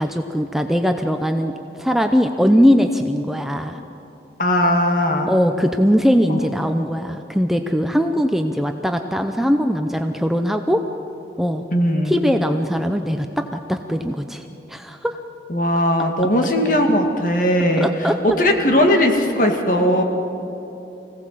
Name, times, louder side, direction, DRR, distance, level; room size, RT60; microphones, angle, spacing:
voice 1, 0.0-3.8 5.3-10.8 11.4-11.6 12.0-15.2 17.8-18.2, equal, ahead, 5 dB, 0.6 m, -20 dB
voice 2, 4.4-5.3 6.3-6.4 11.7-12.2 15.5-17.9 18.2-20.0, left 1 dB, 50° left, 3 dB, 2.0 m, -18 dB
24.5 x 17.0 x 7.6 m, 3.0 s
head